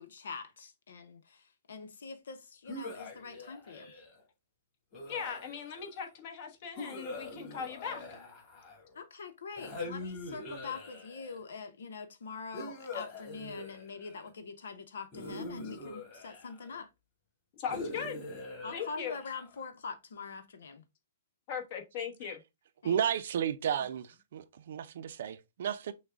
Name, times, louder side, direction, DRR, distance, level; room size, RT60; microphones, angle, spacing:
voice 1, 0.0-3.9 8.9-16.9 18.6-20.8 22.8-23.0, left 5 dB, 85° left, 0.9 m, -44 dB
sound 1, 2.7-4.2 4.9-5.9 6.8-9.0 9.6-11.4 12.5-14.3 15.1-16.8 17.7-19.6, left 2 dB, 25° left, 2.4 m, -43 dB
voice 2, 5.1-8.0 17.5-18.2 18.7-19.2 21.5-22.4, left 7 dB, 45° left, 1.2 m, -38 dB
voice 3, 22.8-25.9, right 9 dB, 65° right, 0.5 m, -33 dB
6.2 x 2.3 x 3.5 m
hypercardioid pair, 145°, 0 cm